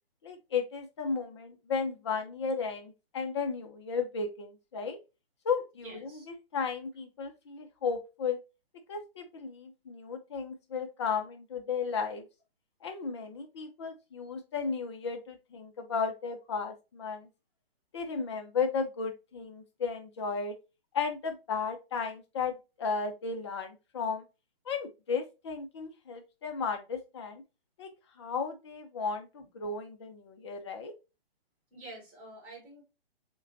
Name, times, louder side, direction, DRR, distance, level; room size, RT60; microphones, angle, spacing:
voice 1, 0.2-5.0 5.4-8.4 8.9-12.2 12.8-17.3 17.9-20.6 20.9-24.2 24.7-27.4 27.8-27.9 28.2-30.9, left 5 dB, 30° left, 5 dB, 0.5 m, -34 dB
voice 2, 5.8-6.3 31.7-32.8, right 2 dB, 5° right, -4 dB, 2.0 m, -48 dB
6.4 x 2.2 x 2.5 m, 0.27 s
figure-of-eight pair, 135°, 31 cm